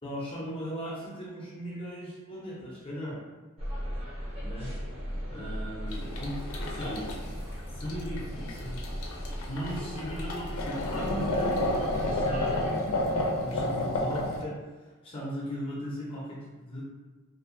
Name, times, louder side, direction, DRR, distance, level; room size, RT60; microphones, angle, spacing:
voice 1, 0.0-3.2 4.4-4.8 5.3-6.4 6.7-7.2 7.7-8.8 9.5-13.0 13.3-16.8, equal, 25° left, -6 dB, 0.6 m, -38 dB
sound 1, 3.6-12.7, equal, 25° right, 0.6 m, -37 dB
sound 2, 5.9-14.4, left 1 dB, 70° left, 0.4 m, -31 dB
2.5 x 2.2 x 2.6 m, 1.2 s
head